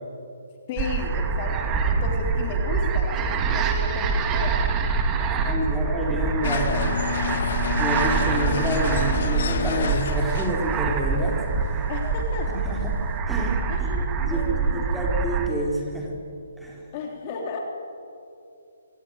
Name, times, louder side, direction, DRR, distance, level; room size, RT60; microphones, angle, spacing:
voice 1, 0.7-4.6 5.2-7.1 11.9-12.5 13.7-15.0 16.9-17.6, left 4 dB, 30° left, 1 dB, 3.4 m, -34 dB
sound 1, 0.8-15.5, right 5 dB, 20° right, 2.1 m, -25 dB
voice 2, 5.3-6.6 7.8-11.4 11.7-11.8 12.5-12.8 13.3-13.9 14.3-16.2 16.6-16.8, equal, ahead, -3 dB, 4.6 m, -28 dB
sound 2, 6.4-13.2, left 7 dB, 50° left, 1.8 m, -30 dB
26.0 x 19.5 x 9.4 m, 2.6 s
figure-of-eight pair, 140°, 0 cm